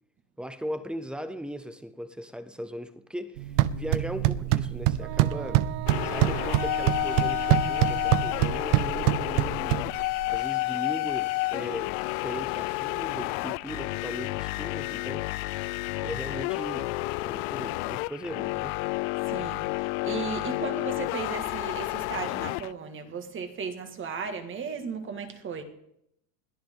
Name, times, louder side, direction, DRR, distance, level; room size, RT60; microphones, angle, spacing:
voice 1, 0.4-5.7 6.0-9.8 10.3-15.3 16.0-18.8, equal, ahead, 0.5 m, -38 dB
sound 1, 3.4-10.4, right 14 dB, 60° right, 0.8 m, -25 dB
Wind instrument woodwind instrument, 5.0-9.6, right 12 dB, 90° right, 0.9 m, -39 dB
sound 2, 5.9-22.7, left 23 dB, 55° left, 0.5 m, -30 dB
voice 2, 19.2-25.6, right 6 dB, 25° right, 2.0 m, -36 dB
21.5 x 14.5 x 3.8 m
supercardioid pair, 140°, 46 cm